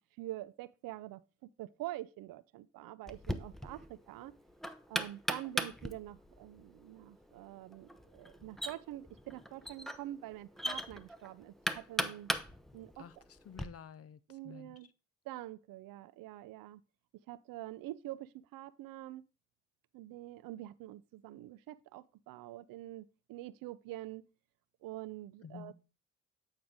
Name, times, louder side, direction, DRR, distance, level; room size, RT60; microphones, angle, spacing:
voice 1, 0.2-4.3 4.9-12.3 12.7-13.0 14.3-14.9 15.2-16.8 17.3-19.2 19.9-24.3 24.8-25.7, right 15 dB, 65° right, 0.5 m, -46 dB
Knock, 3.1-13.7, equal, ahead, 0.7 m, -40 dB
voice 2, 13.0-14.8 25.4-25.7, left 7 dB, 40° left, 0.7 m, -51 dB
8.8 x 4.6 x 3.7 m
hypercardioid pair, 45°, 37 cm